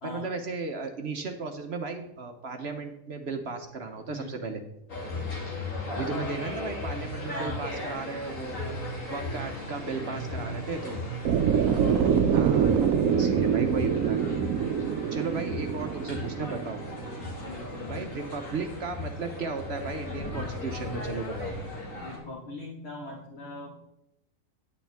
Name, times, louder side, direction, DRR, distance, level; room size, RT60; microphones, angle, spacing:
voice 1, 0.0-4.6 5.9-8.6 9.1-11.0 12.3-12.7 13.1-14.2 15.1-16.8 17.9-21.5, right 4 dB, 55° right, 5 dB, 1.0 m, -35 dB
sound 1, 4.9-22.2, left 2 dB, 75° left, 2.6 m, -36 dB
voice 2, 7.3-7.6 9.8-10.7 11.5-11.8 17.4-18.0 22.0-23.7, left 2 dB, 50° left, -3 dB, 1.7 m, -41 dB
sound 2, 11.2-17.4, right 8 dB, 85° right, 1.0 m, -25 dB
9.6 x 8.9 x 3.4 m, 0.85 s
omnidirectional pair, 1.4 m